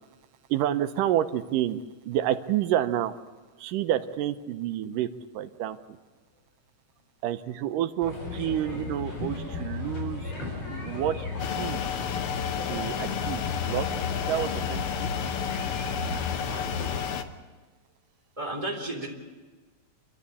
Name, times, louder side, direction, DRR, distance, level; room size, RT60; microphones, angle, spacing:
voice 1, 0.5-3.1 3.6-5.1 5.3-5.8 7.2-10.3 10.8-11.2 11.5-11.8 12.6-13.9 14.3-15.1, right 11 dB, 85° right, 10 dB, 2.4 m, -29 dB
sound 1, 8.0-17.0, left 4 dB, 50° left, 5.8 m, -35 dB
sound 2, 11.4-17.2, left 8 dB, 65° left, 1.4 m, -31 dB
voice 2, 18.4-19.1, right 1 dB, 10° right, 1 dB, 2.8 m, -35 dB
28.5 x 12.5 x 8.4 m, 1.3 s
omnidirectional pair, 3.8 m